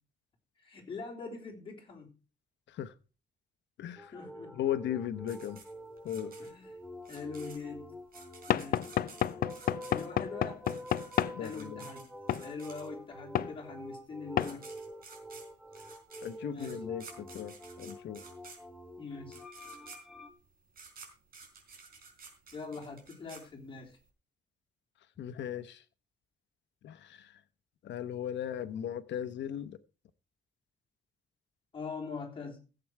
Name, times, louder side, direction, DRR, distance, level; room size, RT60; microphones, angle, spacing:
voice 1, 0.6-2.2 4.1-4.5 6.4-6.7 7.1-7.9 8.5-8.9 9.9-10.6 11.4-12.1 12.4-14.7 16.5-16.8 19.0-19.4 22.5-24.0 31.7-32.6, left 4 dB, 30° left, 3.4 m, -42 dB
voice 2, 3.8-4.1 4.5-5.6 6.0-6.3 11.3-11.9 16.2-18.2 25.2-25.8 26.8-27.4 27.8-29.8, left 10 dB, 90° left, 1.0 m, -37 dB
sound 1, 4.0-20.3, equal, ahead, 1.1 m, -47 dB
sound 2, 5.3-13.2 14.0-14.1 14.3-24.0, right 5 dB, 55° right, 4.1 m, -53 dB
Knock / Wood, 8.5-11.4 12.3-12.5 13.4-13.5 14.4-14.6, left 11 dB, 55° left, 0.5 m, -30 dB
15.5 x 7.9 x 4.7 m
wide cardioid pair, 170°, 18 cm